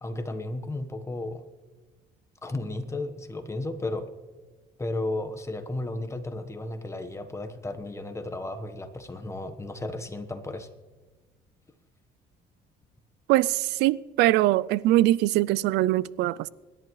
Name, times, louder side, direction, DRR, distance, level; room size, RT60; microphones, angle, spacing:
voice 1, 0.0-1.4 2.4-4.1 4.8-10.7, left 2 dB, 15° left, 1.2 m, -34 dB
voice 2, 13.3-16.5, right 16 dB, 85° right, 0.4 m, -22 dB
26.0 x 11.0 x 3.2 m
cardioid pair, 110°, 17 cm